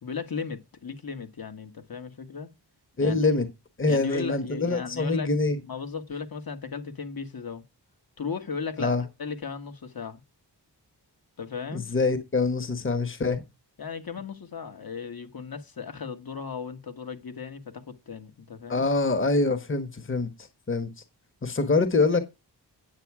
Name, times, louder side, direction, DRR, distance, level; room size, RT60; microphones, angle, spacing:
voice 1, 0.0-2.5 3.0-3.2 3.9-5.3 5.6-7.6 8.2-10.2 11.4-11.9 13.8-18.9, left 6 dB, 55° left, 1.5 m, -36 dB
voice 2, 3.0-3.5 3.8-5.6 8.8-9.0 11.7-13.4 18.7-20.3 20.7-20.9 21.4-22.2, left 3 dB, 30° left, 1.3 m, -24 dB
9.1 x 8.4 x 4.8 m
wide cardioid pair, 105°, 42 cm